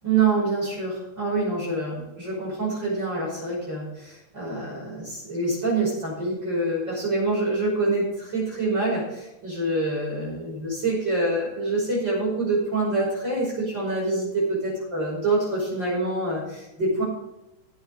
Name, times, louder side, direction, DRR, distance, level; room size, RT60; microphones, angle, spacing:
voice 1, 0.0-17.0, right 2 dB, 25° right, -6 dB, 5.9 m, -26 dB
17.0 x 8.1 x 4.8 m, 0.92 s
omnidirectional pair, 5.0 m